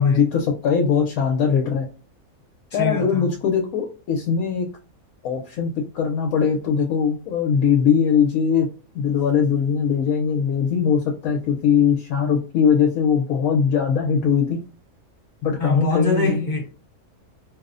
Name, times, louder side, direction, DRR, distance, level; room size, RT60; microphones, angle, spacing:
voice 1, 0.0-1.9 2.7-4.7 5.2-8.7 8.9-14.6 15.4-16.5, left 7 dB, 75° left, 1.0 m, -20 dB
voice 2, 2.7-3.3 15.6-16.6, left 3 dB, 35° left, 1.2 m, -24 dB
2.7 x 2.0 x 2.4 m
omnidirectional pair, 1.5 m